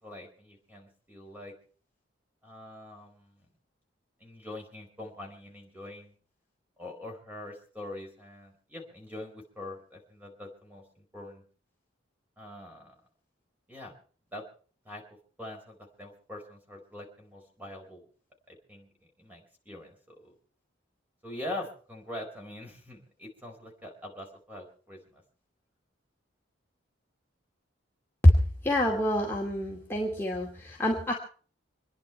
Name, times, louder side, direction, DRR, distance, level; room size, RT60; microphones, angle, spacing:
voice 1, 0.0-1.5 2.4-3.4 4.2-6.1 6.8-11.4 12.4-13.0 13.7-14.0 14.3-14.4 14.8-15.0 15.4-18.0 18.5-18.9 19.2-20.3 21.2-25.2, left 1 dB, 10° right, 2 dB, 4.5 m, -43 dB
voice 2, 28.6-31.1, left 1 dB, 10° left, -2 dB, 2.4 m, -24 dB
27.0 x 10.5 x 4.5 m, 0.42 s
head